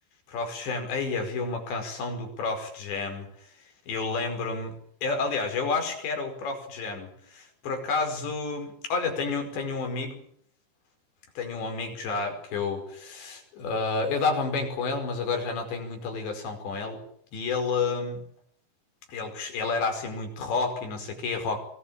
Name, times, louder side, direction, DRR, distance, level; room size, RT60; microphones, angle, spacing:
voice 1, 0.3-3.5 3.9-10.2 11.4-17.0 17.3-18.2 19.1-21.6, left 4 dB, 75° left, 5 dB, 7.3 m, -30 dB
25.0 x 19.5 x 8.7 m, 0.65 s
omnidirectional pair, 5.1 m